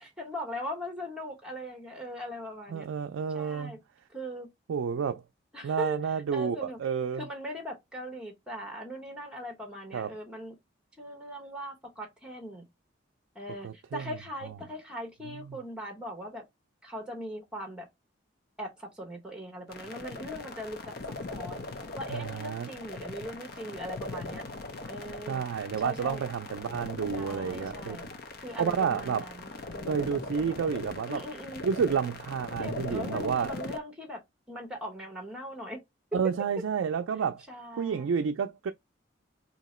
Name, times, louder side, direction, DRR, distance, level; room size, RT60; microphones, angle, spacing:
voice 1, 0.0-2.9 3.3-3.8 4.1-4.5 5.5-6.0 6.3-6.8 7.1-10.5 11.0-12.6 13.3-16.4 16.8-17.9 18.6-20.8 21.3-21.7 21.9-24.4 24.9-25.4 25.8-26.2 27.1-28.0 28.4-30.1 31.1-31.6 32.6-34.2 34.5-35.8 37.5-38.3, equal, 5° right, 0.9 m, -40 dB
voice 2, 2.7-3.8 4.7-5.2 5.6-7.3 9.9-10.1 13.6-14.0 15.3-15.6 22.1-22.7 25.3-28.0 28.6-29.3 29.9-31.2 31.6-33.5 36.1-37.4 37.8-38.7, right 6 dB, 85° right, 0.4 m, -30 dB
sound 1, 19.7-33.8, left 2 dB, 50° left, 0.6 m, -40 dB
2.8 x 2.8 x 4.2 m
head